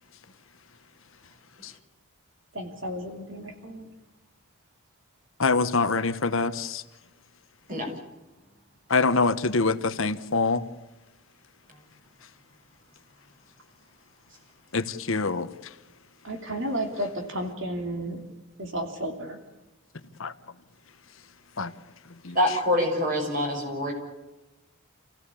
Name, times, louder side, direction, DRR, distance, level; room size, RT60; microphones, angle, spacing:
voice 1, 2.5-3.9 16.2-18.2 18.6-19.4, right 1 dB, 60° right, 3.0 m, -32 dB
voice 2, 5.4-6.8 8.9-10.7 14.7-15.5 20.2-20.3 21.6-21.7 22.2-22.4, left 4 dB, 65° left, 1.2 m, -25 dB
voice 3, 22.3-23.9, left 1 dB, 40° right, 6.6 m, -25 dB
28.5 x 16.5 x 8.5 m
head